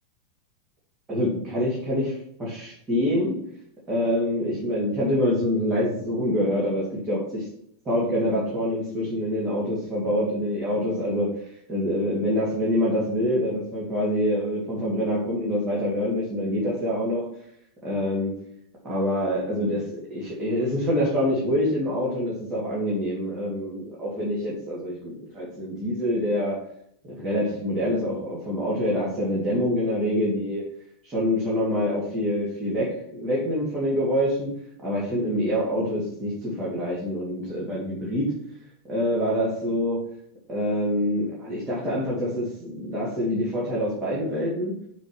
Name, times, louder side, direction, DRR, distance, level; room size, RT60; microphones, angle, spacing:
voice 1, 1.1-3.4 3.9-7.5 7.8-17.3 17.8-18.4 18.8-26.6 27.1-30.6 31.0-34.5 34.8-38.3 38.9-40.0 40.5-44.8, equal, 20° right, -7 dB, 2.7 m, -26 dB
6.9 x 3.7 x 6.2 m, 0.71 s
figure-of-eight pair, 90°, 0 cm